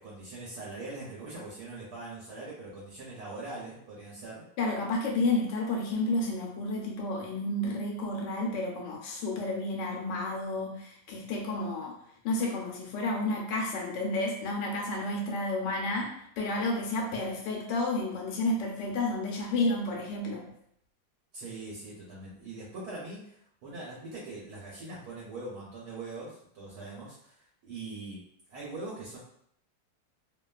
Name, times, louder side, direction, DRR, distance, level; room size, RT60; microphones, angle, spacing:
voice 1, 0.0-4.4 21.3-28.2 28.5-29.2, right 2 dB, 70° right, -6 dB, 1.2 m, -42 dB
voice 2, 4.6-11.9 12.2-20.4, left 2 dB, 90° left, -1 dB, 1.2 m, -31 dB
2.9 x 2.3 x 2.3 m, 0.71 s
omnidirectional pair, 1.8 m